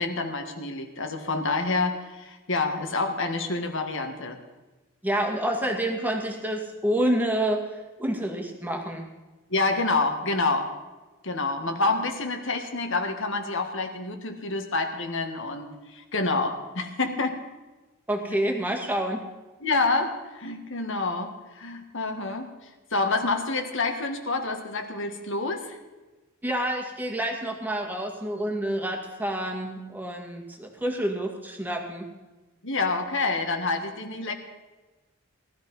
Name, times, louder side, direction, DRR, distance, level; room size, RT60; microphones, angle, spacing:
voice 1, 0.0-4.4 9.5-10.7 11.2-17.4 19.6-22.5 22.9-25.8 32.6-34.3, left 3 dB, 60° left, 5 dB, 1.9 m, -28 dB
voice 2, 5.0-7.6 8.0-9.1 18.1-19.2 26.4-32.1, right 1 dB, 10° right, 2 dB, 2.0 m, -28 dB
18.5 x 13.0 x 5.5 m, 1.2 s
head